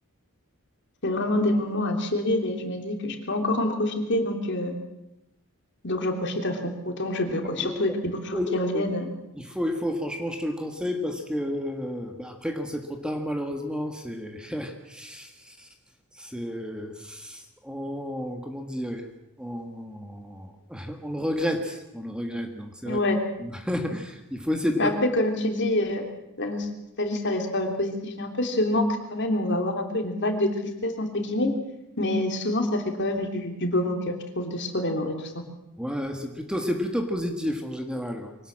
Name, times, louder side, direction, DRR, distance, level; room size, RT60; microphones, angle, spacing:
voice 1, 1.0-4.7 5.8-9.1 22.9-23.2 24.8-26.0 26.4-26.7 27.0-30.5 30.8-31.5 32.0-35.3, left 1 dB, 50° left, 4 dB, 3.1 m, -26 dB
voice 2, 9.3-15.7 16.1-19.1 19.4-23.0 23.4-24.9 35.8-38.4, equal, 5° right, 5 dB, 1.6 m, -31 dB
23.5 x 18.0 x 7.5 m, 0.88 s
head